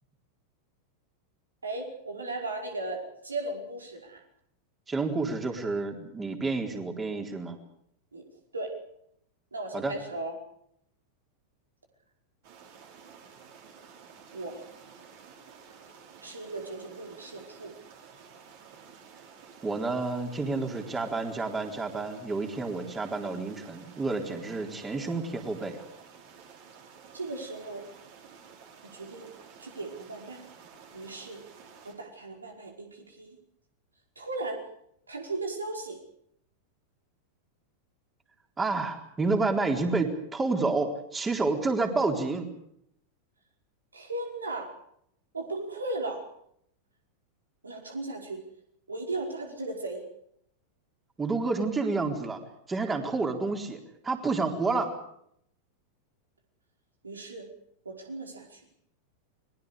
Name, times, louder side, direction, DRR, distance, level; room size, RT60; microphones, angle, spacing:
voice 1, 1.6-4.2 8.1-8.2 8.5-8.7 9.5-10.3 14.3-14.7 16.2-17.7 27.1-27.8 28.8-29.3 29.6-30.4 30.9-31.4 31.8-33.4 34.2-34.6 35.1-36.0 43.9-44.7 45.3-46.2 47.6-48.4 48.9-50.0 57.0-57.5 57.8-58.6, right 2 dB, 75° right, 2 dB, 5.1 m, -36 dB
voice 2, 4.9-7.6 9.7-9.9 19.6-25.9 38.6-42.5 51.2-52.4 52.7-54.9, right 3 dB, 15° right, 4 dB, 4.0 m, -29 dB
sound 1, 12.4-31.9, right 6 dB, 50° right, 6.4 m, -52 dB
29.5 x 22.5 x 5.1 m, 0.72 s
figure-of-eight pair, 90°, 0 cm